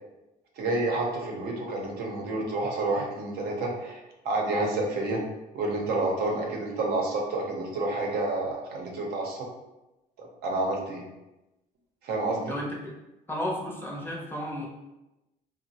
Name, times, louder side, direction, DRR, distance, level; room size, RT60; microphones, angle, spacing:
voice 1, 0.6-4.0 4.2-5.2 5.5-9.4 10.2-11.0 12.0-12.5, right 2 dB, 70° right, 0 dB, 0.7 m, -29 dB
voice 2, 12.5-12.9 13.3-14.7, equal, 10° left, -3 dB, 0.6 m, -33 dB
3.0 x 2.0 x 2.7 m, 0.98 s
cardioid pair, 110°, 17 cm